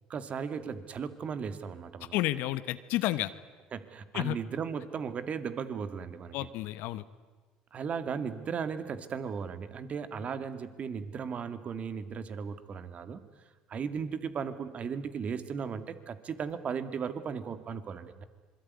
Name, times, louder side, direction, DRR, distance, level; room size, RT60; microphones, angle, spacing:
voice 1, 0.1-2.2 3.7-6.4 7.7-13.2 13.7-18.2, right 6 dB, 45° right, 11 dB, 2.3 m, -36 dB
voice 2, 2.1-3.3 4.1-4.3 6.3-7.0, left 16 dB, 70° left, 13 dB, 1.1 m, -31 dB
26.5 x 22.5 x 9.7 m, 1.4 s
supercardioid pair, 80°, 3 cm